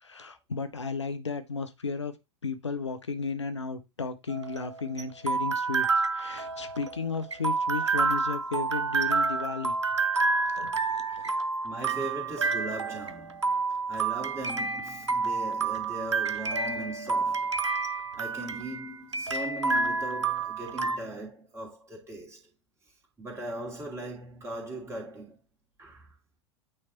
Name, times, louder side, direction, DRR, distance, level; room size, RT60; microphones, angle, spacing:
voice 1, 0.0-2.1 2.4-5.9 6.1-9.7 10.5-11.4, left 4 dB, 80° left, 0.8 m, -34 dB
sound 1, 4.3-21.0, right 4 dB, 85° right, 0.6 m, -29 dB
voice 2, 11.6-22.5 23.2-25.4 25.8-26.1, right 1 dB, 20° right, 2.8 m, -39 dB
8.8 x 3.3 x 4.1 m
figure-of-eight pair, 85°, 15 cm